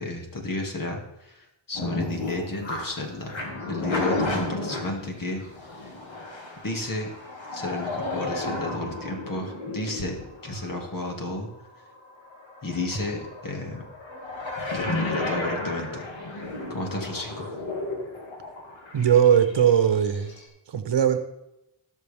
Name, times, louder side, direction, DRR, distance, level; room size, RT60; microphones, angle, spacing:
voice 1, 0.0-3.4 3.7-5.4 5.8-6.0 6.6-7.1 7.5-11.5 12.6-13.8 14.7-16.0 16.7-17.5, left 2 dB, 45° left, 2 dB, 2.5 m, -32 dB
sound 1, 1.7-20.4, left 2 dB, 75° left, 2.5 m, -33 dB
voice 2, 18.9-20.3 20.7-21.2, right 8 dB, 65° right, 9 dB, 1.1 m, -19 dB
17.0 x 6.5 x 3.6 m, 0.88 s
cardioid pair, 80°, 46 cm